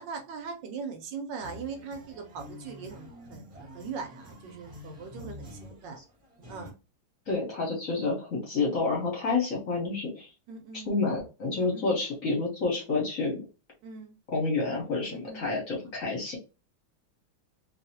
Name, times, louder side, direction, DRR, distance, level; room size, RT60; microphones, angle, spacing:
voice 1, 0.0-6.0 6.5-6.7 10.5-10.9 11.6-11.9 13.8-14.2 15.1-15.9, right 5 dB, 70° right, 5 dB, 1.2 m, -41 dB
sound 1, 1.4-6.7, left 1 dB, 25° right, 0.9 m, -47 dB
voice 2, 7.3-10.3 10.9-13.4 14.3-16.4, left 3 dB, 50° left, -2 dB, 1.2 m, -29 dB
3.0 x 2.7 x 2.7 m, 0.31 s
omnidirectional pair, 2.2 m